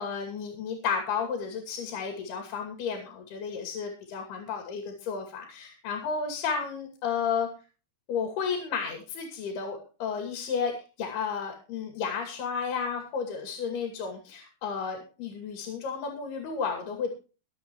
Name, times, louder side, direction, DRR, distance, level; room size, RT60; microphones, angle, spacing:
voice 1, 0.0-7.5 8.1-10.7 11.0-17.1, left 6 dB, 90° left, 3 dB, 4.6 m, -32 dB
24.0 x 8.2 x 3.1 m, 0.34 s
omnidirectional pair, 4.4 m